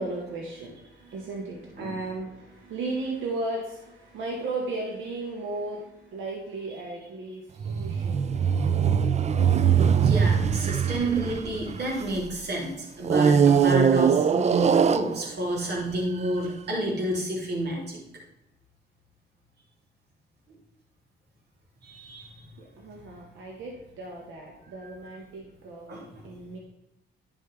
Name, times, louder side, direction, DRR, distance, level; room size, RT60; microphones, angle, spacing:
voice 1, 0.0-8.3 22.2-26.6, right 2 dB, 85° right, -1 dB, 1.7 m, -35 dB
sound 1, 7.6-12.3 13.0-15.6 16.3-16.4, right 7 dB, 35° right, 0.4 m, -22 dB
voice 2, 9.9-18.0 21.8-22.4 25.9-26.0, right 1 dB, 60° right, -3 dB, 3.3 m, -30 dB
11.0 x 5.4 x 3.5 m, 0.88 s
cardioid pair, 90°, 20 cm